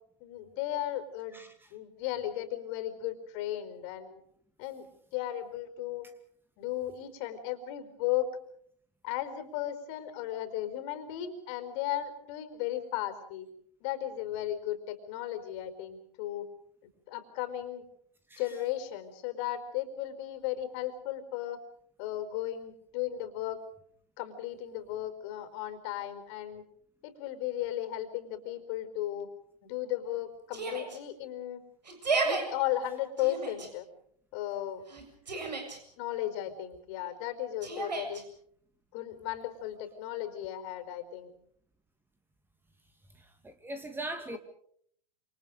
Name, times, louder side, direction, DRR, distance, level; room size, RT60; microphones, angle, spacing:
voice 1, 0.2-1.4 1.7-4.2 4.6-6.1 6.6-8.3 9.0-13.5 13.8-16.5 17.1-17.8 18.4-21.6 22.0-23.6 24.2-26.6 27.0-29.3 29.6-31.6 32.2-33.9 34.3-34.8 36.0-38.2 38.9-41.3 44.3-44.4, left 12 dB, 45° left, 9 dB, 4.7 m, -35 dB
Yell, 30.5-31.0 31.8-32.4 33.2-33.7 34.9-35.8 37.6-38.2, right 4 dB, 80° right, 7.6 m, -32 dB
voice 2, 43.4-44.4, right 2 dB, 10° right, 8 dB, 2.4 m, -39 dB
28.0 x 28.0 x 5.1 m, 0.65 s
figure-of-eight pair, 100°, 21 cm